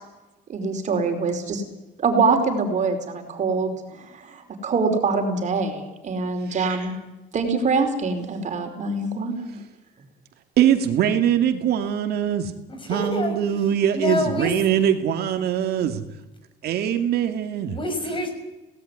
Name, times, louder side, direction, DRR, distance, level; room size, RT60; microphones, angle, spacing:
voice 1, 0.5-1.6 2.0-3.7 4.0-6.9 7.3-9.6, right 4 dB, 45° right, 5 dB, 4.9 m, -24 dB
voice 2, 10.6-12.5 12.9-16.0 16.6-17.8, right 9 dB, 70° right, 7 dB, 2.3 m, -22 dB
voice 3, 12.7-13.4 13.9-14.5 16.9-17.0 17.6-18.3, left 2 dB, 30° left, 7 dB, 6.5 m, -27 dB
18.0 x 17.0 x 9.8 m, 1.1 s
cardioid pair, 110°, 17 cm